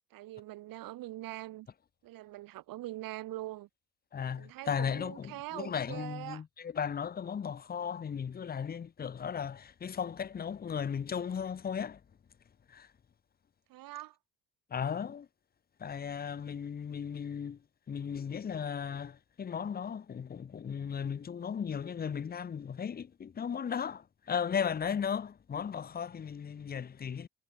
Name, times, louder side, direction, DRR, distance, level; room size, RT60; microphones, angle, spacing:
voice 1, 0.1-1.7 2.0-3.7 4.3-6.4 13.7-14.2, right 16 dB, 90° right, 3.6 m, -43 dB
voice 2, 4.1-12.0 12.7-12.9 14.7-15.3 15.8-17.6 17.9-27.3, left 7 dB, 30° left, 1.8 m, -36 dB
cardioid pair, 175°, 33 cm